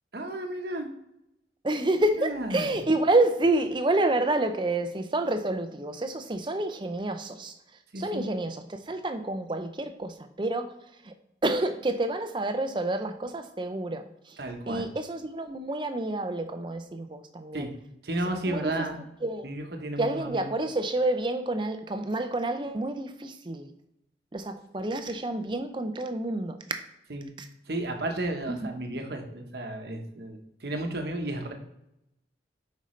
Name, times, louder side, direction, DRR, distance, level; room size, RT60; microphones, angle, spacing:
voice 1, 0.1-0.9 2.2-2.7 7.9-8.3 14.4-14.9 17.5-17.7 18.0-19.0 19.4-20.5 27.1-27.3 27.7-31.5, right 1 dB, 65° right, 4 dB, 1.0 m, -33 dB
voice 2, 1.6-7.6 8.0-10.7 11.0-11.1 11.4-14.4 14.7-17.7 18.5-19.5 20.0-23.7 24.3-26.8 27.4-27.5 28.5-28.7, right 2 dB, 25° right, 7 dB, 0.5 m, -29 dB
8.0 x 5.3 x 3.1 m, 0.85 s
head